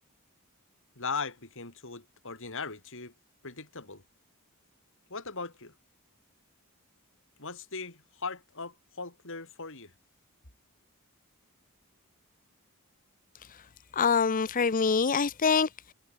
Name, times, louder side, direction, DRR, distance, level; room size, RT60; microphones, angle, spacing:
voice 1, 1.0-3.1 3.4-4.0 5.1-5.7 7.4-9.9, left 4 dB, 60° left, 5.8 m, -39 dB
voice 2, 13.9-15.9, left 5 dB, 40° left, 0.7 m, -25 dB
head